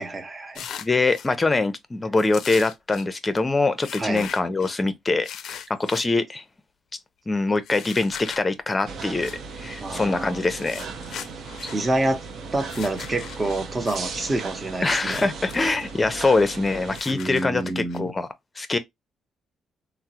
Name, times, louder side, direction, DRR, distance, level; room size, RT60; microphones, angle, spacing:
voice 1, 0.0-0.7 4.0-4.3 9.8-10.4 11.7-12.2 12.5-15.3 17.1-18.1, right 2 dB, 25° right, 0.8 m, -27 dB
sound 1, 0.5-1.3 2.2-3.1 3.8-4.7 5.2-6.1 7.6-8.4 9.2-9.4 10.4-11.8 12.6-14.0 14.9-15.6 15.9-16.0 16.9-18.0, left 9 dB, 70° left, 0.4 m, -39 dB
voice 2, 0.8-5.3 5.7-6.4 7.3-9.3 9.6-10.8 14.8-18.3 18.6-18.8, left 3 dB, 25° left, 0.6 m, -23 dB
sound 2, 8.9-17.0, right 4 dB, 65° right, 0.6 m, -37 dB
3.5 x 2.0 x 2.8 m
cardioid pair, 90°, 0 cm